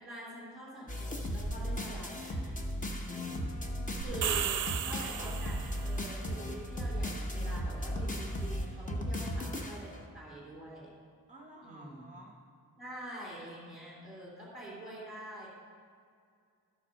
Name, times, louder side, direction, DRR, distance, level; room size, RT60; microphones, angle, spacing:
voice 1, 0.0-2.6 2.9-3.5 4.0-10.9 11.6-12.0 12.8-15.5, right 1 dB, ahead, -10 dB, 2.8 m, -46 dB
sound 1, 0.9-10.0, equal, 20° left, 0.8 m, -36 dB
sound 2, 3.2-8.7, left 4 dB, 55° left, 0.9 m, -56 dB
voice 2, 3.5-4.1 11.3-12.4, right 1 dB, 20° right, 0 dB, 0.8 m, -54 dB
sound 3, 4.0-5.9, right 9 dB, 55° right, 0.5 m, -34 dB
12.5 x 4.5 x 6.4 m, 2.2 s
wide cardioid pair, 165°, 36 cm